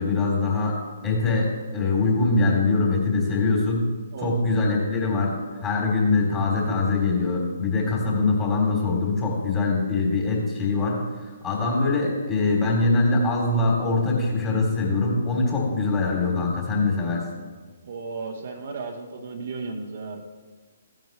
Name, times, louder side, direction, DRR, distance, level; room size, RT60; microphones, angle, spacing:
voice 1, 0.0-3.9 4.2-5.3 5.6-11.0 11.4-17.2, left 3 dB, 20° left, -2 dB, 3.5 m, -23 dB
voice 2, 4.1-5.1 17.8-20.2, right 4 dB, 50° right, 3 dB, 1.3 m, -35 dB
15.5 x 9.1 x 3.4 m, 1.4 s
figure-of-eight pair, 130°, 0 cm